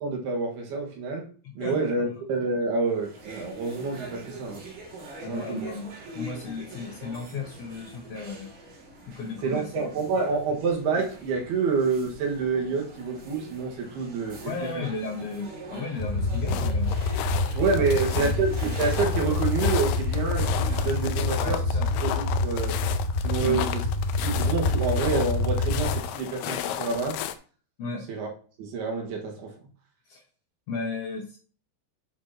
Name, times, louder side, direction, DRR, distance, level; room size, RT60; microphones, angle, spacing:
voice 1, 0.0-1.3 1.6-4.6 5.3-5.7 9.4-14.4 14.8-14.9 17.6-21.6 22.0-22.1 22.4-22.8 23.2-23.8 24.2-27.2 28.1-28.3 28.6-29.5, right 4 dB, 85° right, 3.7 m, -28 dB
voice 2, 1.4-1.9 5.2-5.9 6.1-8.5 9.1-9.9 14.4-17.0 17.8-18.3 21.3-21.9 23.4-23.6 27.8-28.0 30.1-30.2 30.7-31.4, left 4 dB, 70° left, 1.4 m, -35 dB
sound 1, 2.8-21.3, right 2 dB, 65° right, 4.6 m, -44 dB
sound 2, 15.7-27.4, left 11 dB, 85° left, 2.7 m, -34 dB
sound 3, 16.0-26.0, left 2 dB, 40° left, 1.3 m, -27 dB
9.4 x 6.3 x 3.0 m
omnidirectional pair, 4.5 m